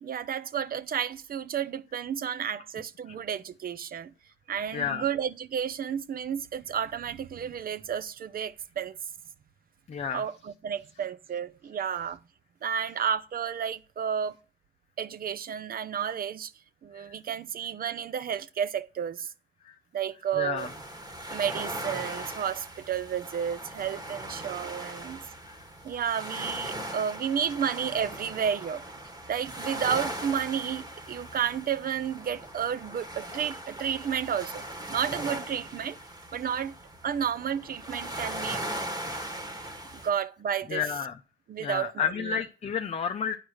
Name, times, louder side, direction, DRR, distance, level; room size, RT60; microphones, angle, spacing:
voice 1, 0.0-4.1 4.5-9.0 10.1-12.2 12.6-14.3 15.0-16.5 16.8-19.3 19.9-20.7 21.3-25.2 25.8-28.9 29.3-34.6 34.9-36.0 36.3-36.7 37.0-38.6 39.9-40.8 41.5-42.4, right 8 dB, 50° right, 0.6 m, -31 dB
voice 2, 4.7-5.0 9.9-10.2 16.9-17.2 19.6-19.7 20.4-20.7 25.5-25.6 40.7-41.2 41.6-43.4, left 7 dB, 35° left, 0.6 m, -31 dB
sound 1, 20.6-40.1, right 1 dB, 20° right, 1.6 m, -39 dB
9.6 x 4.8 x 6.3 m
cardioid pair, 90°, 20 cm